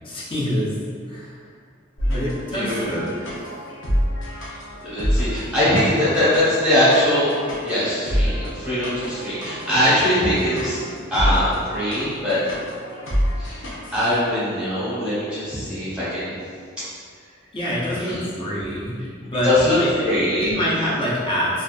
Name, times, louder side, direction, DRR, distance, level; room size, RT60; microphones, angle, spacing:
voice 1, 0.0-0.8 1.1-1.5 2.1-3.3 17.5-20.1 20.4-21.6, equal, 25° left, -6 dB, 0.5 m, -26 dB
sound 1, 2.0-14.2, equal, 70° left, 0.6 m, -28 dB
voice 2, 2.5-2.9 4.4-4.5 4.8-7.3 7.6-10.8 11.1-12.5 13.4-13.6 13.9-16.4 17.9-18.2 19.4-19.7 20.0-20.5, left 1 dB, 5° right, -13 dB, 0.9 m, -21 dB
2.4 x 2.3 x 2.3 m, 2.1 s
head